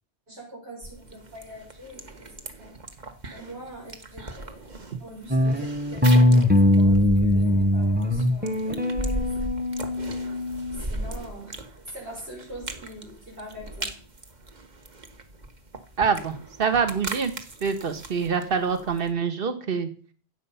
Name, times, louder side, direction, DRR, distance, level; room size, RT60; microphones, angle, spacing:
voice 1, 0.3-2.7 3.3-4.7 5.0-9.8 10.1-13.9, right 1 dB, 75° right, -3 dB, 6.0 m, -43 dB
sound 1, 0.8-19.1, right 1 dB, 40° right, 1.6 m, -38 dB
sound 2, 5.3-10.8, left 1 dB, 10° right, 1.0 m, -21 dB
voice 2, 16.0-17.3 17.6-19.9, right 6 dB, 60° right, 8 dB, 1.6 m, -25 dB
16.0 x 8.2 x 5.6 m, 0.41 s
omnidirectional pair, 1.1 m